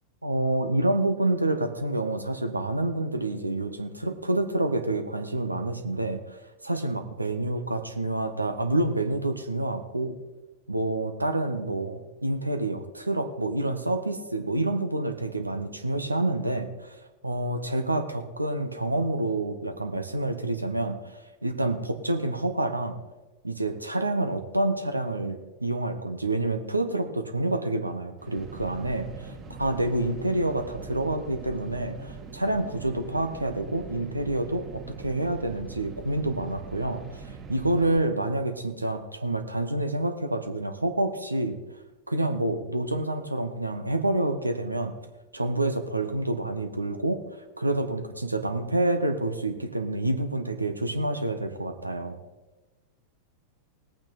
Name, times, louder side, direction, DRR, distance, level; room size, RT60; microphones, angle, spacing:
voice 1, 0.2-10.2 10.7-17.0 17.2-23.0 23.4-29.3 29.6-37.2 37.5-41.6 42.1-44.9 45.3-52.2, right 2 dB, 85° right, 7 dB, 1.1 m, -28 dB
sound 1, 28.2-38.0, right 4 dB, 25° right, 2.3 m, -42 dB
19.0 x 8.7 x 4.1 m, 1.1 s
figure-of-eight pair, 90°, 0 cm